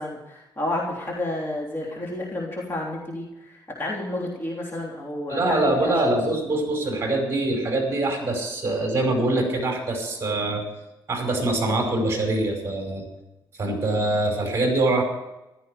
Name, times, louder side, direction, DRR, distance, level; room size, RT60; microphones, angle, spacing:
voice 1, 0.0-5.9, left 1 dB, 30° left, -3 dB, 3.3 m, -30 dB
voice 2, 5.3-10.6 11.1-13.1 13.6-15.0, right 2 dB, 30° right, 2 dB, 5.3 m, -24 dB
15.0 x 13.0 x 5.1 m, 0.95 s
cardioid pair, 130°, 8 cm